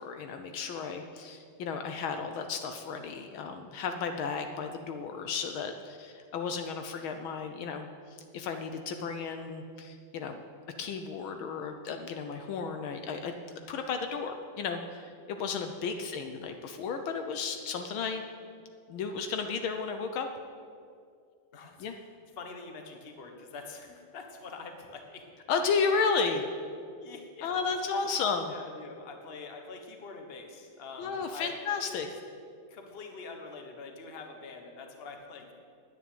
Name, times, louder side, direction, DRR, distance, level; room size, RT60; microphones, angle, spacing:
voice 1, 0.0-10.4 10.8-18.2 18.9-20.3 21.8-22.0 25.5-26.4 27.4-28.5 31.0-32.1, left 5 dB, 70° left, 6 dB, 1.5 m, -33 dB
voice 2, 16.0-16.4 21.5-25.2 27.0-27.5 28.5-31.5 31.9-32.1 32.7-35.5, left 4 dB, 35° left, 4 dB, 1.2 m, -45 dB
9.7 x 9.4 x 9.2 m, 2.3 s
omnidirectional pair, 2.4 m